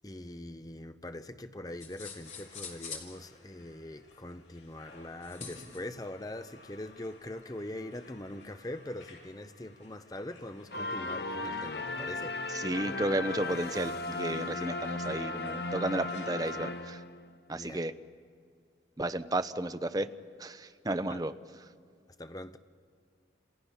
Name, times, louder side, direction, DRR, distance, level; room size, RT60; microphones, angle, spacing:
voice 1, 0.0-12.4 17.5-17.8 21.1-21.2 22.2-22.6, left 1 dB, 20° left, 0.8 m, -42 dB
sound 1, 1.8-3.1 5.2-5.8, left 5 dB, 40° left, 3.4 m, -43 dB
sound 2, 2.1-16.8, left 2 dB, 80° left, 7.8 m, -57 dB
sound 3, 10.7-17.3, left 2 dB, 60° left, 1.0 m, -36 dB
voice 2, 12.5-17.0 17.5-17.9 19.0-20.1 20.4-21.7, right 1 dB, 20° right, 0.7 m, -33 dB
30.0 x 28.0 x 5.7 m
head